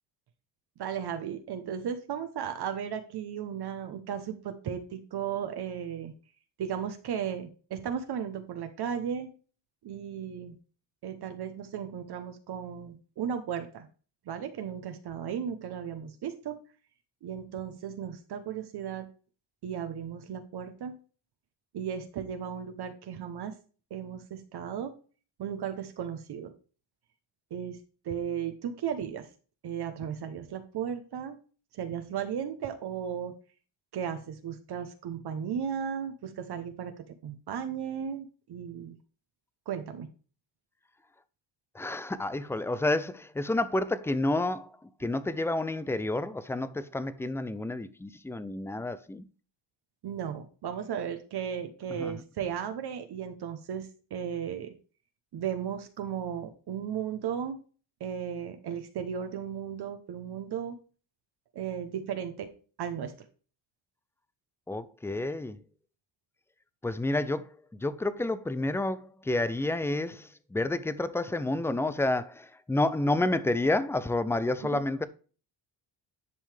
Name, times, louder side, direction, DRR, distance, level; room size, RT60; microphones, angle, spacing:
voice 1, 0.8-6.1 6.6-9.3 9.8-10.5 11.0-13.9 14.3-16.6 17.2-19.1 19.6-21.0 21.7-23.5 23.9-24.9 25.4-26.5 27.5-27.8 28.0-29.3 29.6-31.4 31.7-33.3 33.9-36.9 37.2-38.9 39.7-40.1 50.0-54.7 55.3-57.6 58.0-60.8 61.5-62.5 62.8-63.1 74.6-74.8, right 8 dB, 55° right, 0.9 m, -35 dB
voice 2, 41.7-44.7 45.0-49.2 52.0-52.1 64.7-65.6 66.8-75.1, left 2 dB, 5° left, 0.4 m, -30 dB
10.5 x 5.4 x 3.4 m
cardioid pair, 135°, 46 cm